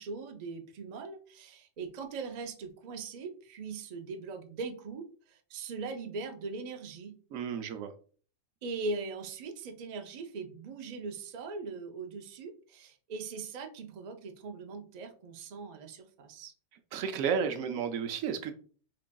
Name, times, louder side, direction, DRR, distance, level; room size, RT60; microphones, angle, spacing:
voice 1, 0.0-7.1 8.6-16.5, right 4 dB, 60° right, 0.4 m, -40 dB
voice 2, 7.3-7.9 16.9-18.6, right 7 dB, 85° right, 1.0 m, -32 dB
3.7 x 3.4 x 2.2 m
omnidirectional pair, 1.4 m